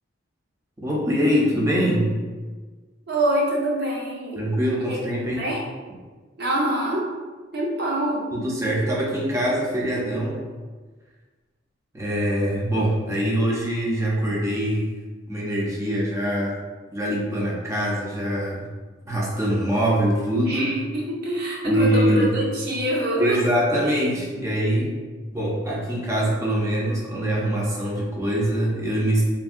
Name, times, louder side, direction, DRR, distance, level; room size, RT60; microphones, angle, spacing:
voice 1, 0.8-2.1 4.4-5.4 8.3-10.4 11.9-14.9 15.3-16.6 16.9-18.6 19.1-20.7 21.6-22.4 23.2-24.9 25.3-29.2, equal, 15° right, -4 dB, 0.5 m, -23 dB
voice 2, 3.1-4.5 4.9-5.0 5.2-5.7 6.4-7.1 7.5-8.3 20.5-23.4, right 1 dB, 55° right, -3 dB, 0.7 m, -25 dB
3.4 x 2.2 x 2.4 m, 1.3 s
head